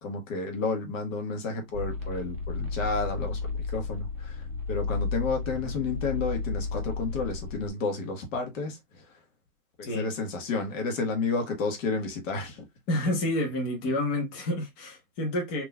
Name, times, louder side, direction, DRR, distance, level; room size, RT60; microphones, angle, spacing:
voice 1, 0.0-9.0 9.8-12.6, left 3 dB, 55° left, 1.3 m, -31 dB
sound 1, 1.7-7.7, left 4 dB, 25° right, 0.5 m, -33 dB
voice 2, 9.8-10.1 12.9-15.6, left 1 dB, 30° left, 1.1 m, -29 dB
3.6 x 2.9 x 2.2 m
hypercardioid pair, 135°, 47 cm